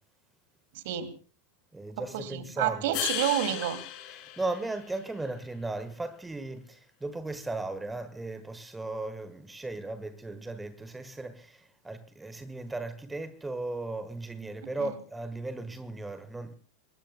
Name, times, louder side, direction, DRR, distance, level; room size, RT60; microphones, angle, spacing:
voice 1, 0.7-1.1 2.0-3.8 14.8-15.0, right 11 dB, 50° right, 2.5 m, -30 dB
voice 2, 1.7-3.0 4.4-16.6, right 2 dB, 10° right, 1.4 m, -36 dB
sound 1, 2.9-5.3, left 15 dB, 40° left, 2.7 m, -36 dB
26.0 x 21.0 x 2.2 m
figure-of-eight pair, 90°, 0 cm